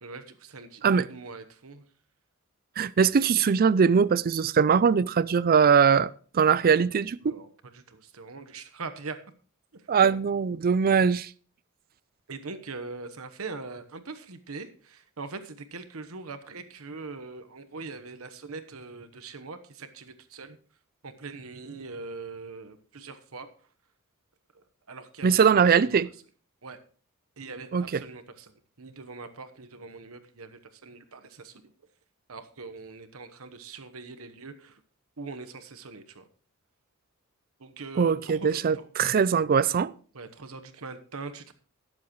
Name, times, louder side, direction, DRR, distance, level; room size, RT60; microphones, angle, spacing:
voice 1, 0.0-1.8 6.5-6.6 7.2-9.2 9.7-9.8 12.3-20.6 21.0-23.5 24.5-26.0 26.6-26.8 27.4-28.5 28.8-31.7 32.3-34.8 35.2-36.3 37.6-38.9 40.1-41.5, right 4 dB, 75° right, 1.1 m, -42 dB
voice 2, 2.8-7.3 9.9-11.3 25.2-26.1 27.7-28.0 38.0-39.9, right 6 dB, 45° right, 0.4 m, -21 dB
18.5 x 7.6 x 3.1 m
head